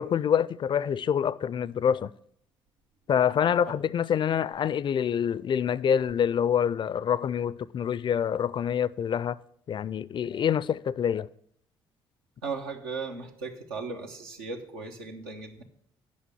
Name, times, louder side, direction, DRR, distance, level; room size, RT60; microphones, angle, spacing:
voice 1, 0.0-2.1 3.1-9.4 9.7-11.3, left 8 dB, 40° left, 0.4 m, -26 dB
voice 2, 12.4-15.6, right 4 dB, 90° right, 1.0 m, -37 dB
8.5 x 5.6 x 7.0 m
hypercardioid pair, 50°, 12 cm